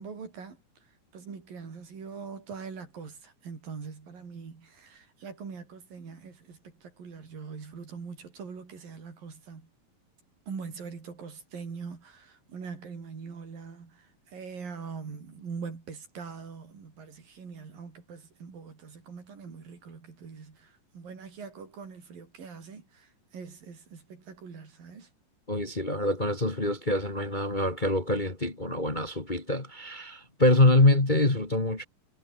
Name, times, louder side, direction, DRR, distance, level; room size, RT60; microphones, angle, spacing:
voice 1, 0.0-9.7 10.5-25.1, right 5 dB, 90° right, 6.7 m, -43 dB
voice 2, 25.5-31.8, left 1 dB, 15° left, 1.9 m, -25 dB
omnidirectional pair, 3.9 m